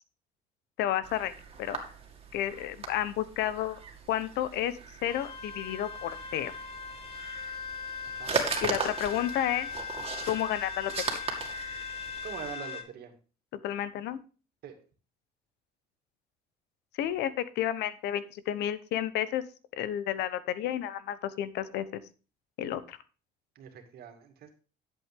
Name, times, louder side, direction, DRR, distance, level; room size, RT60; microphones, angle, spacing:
voice 1, 0.8-1.3 1.6-1.8 2.3-3.8 4.1-6.5 8.6-9.7 10.3-11.2 13.6-14.2 17.0-19.4 19.7-22.0 22.6-23.0, left 11 dB, 80° left, 15 dB, 0.9 m, -31 dB
sound 1, 1.0-12.5, right 5 dB, 35° right, 2.4 m, -38 dB
sound 2, 5.1-12.8, left 6 dB, 35° left, 2.4 m, -39 dB
voice 2, 8.1-8.5 12.2-13.1 14.6-14.8 23.6-24.5, right 8 dB, 65° right, 5 dB, 2.3 m, -43 dB
11.0 x 7.9 x 3.6 m, 0.35 s
cardioid pair, 110°, 17 cm